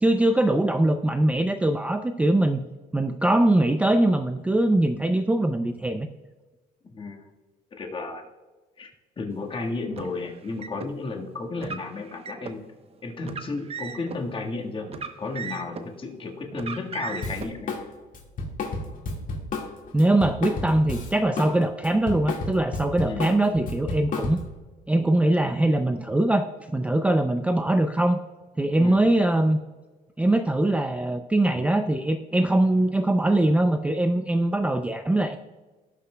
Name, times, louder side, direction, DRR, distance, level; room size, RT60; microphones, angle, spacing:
voice 1, 0.0-6.1 19.9-24.4 24.9-26.5 26.7-28.2 28.6-29.6 30.2-35.4, right 1 dB, 10° right, 8 dB, 0.4 m, -22 dB
voice 2, 6.9-7.3 7.7-8.2 8.8-12.6 13.0-14.9 15.2-17.7 23.0-23.4 28.8-29.0, left 3 dB, 30° left, 1 dB, 1.5 m, -33 dB
Car, 9.9-10.9 11.6-12.6 13.2-14.2 14.9-15.9 16.5-17.5, right 5 dB, 35° right, 0.8 m, -37 dB
Drum kit, 17.2-17.8 18.1-21.5 21.8-24.6, left 3 dB, 50° left, 1.8 m, -31 dB
17.5 x 6.0 x 2.2 m, 1.3 s
cardioid pair, 110°, 17 cm